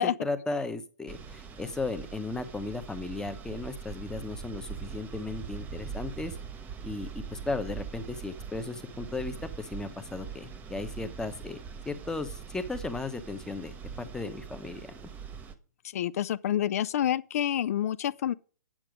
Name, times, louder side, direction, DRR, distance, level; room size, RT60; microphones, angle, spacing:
voice 1, 0.0-6.4 6.8-11.6 11.8-13.7 14.0-14.9, left 3 dB, 5° left, 0.9 m, -35 dB
sound 1, 1.1-15.5, right 6 dB, 15° right, 1.1 m, -42 dB
voice 2, 15.9-18.3, left 10 dB, 55° left, 0.4 m, -28 dB
8.9 x 7.7 x 5.0 m
hypercardioid pair, 135°, 10 cm